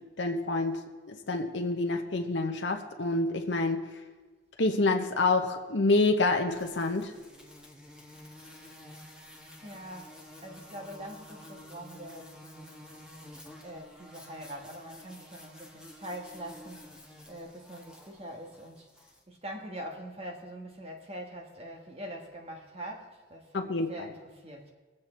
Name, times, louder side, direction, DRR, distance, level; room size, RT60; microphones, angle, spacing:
voice 1, 0.2-0.8 1.1-3.8 4.6-7.1 23.5-23.9, left 2 dB, 75° left, 3 dB, 0.9 m, -27 dB
sound 1, 6.5-19.2, left 1 dB, 5° right, 1.4 m, -51 dB
voice 2, 9.6-10.1 10.4-12.8 13.3-16.8 17.3-18.9 19.3-24.7, right 1 dB, 35° right, 2 dB, 1.5 m, -43 dB
20.5 x 7.7 x 4.4 m, 1.3 s
head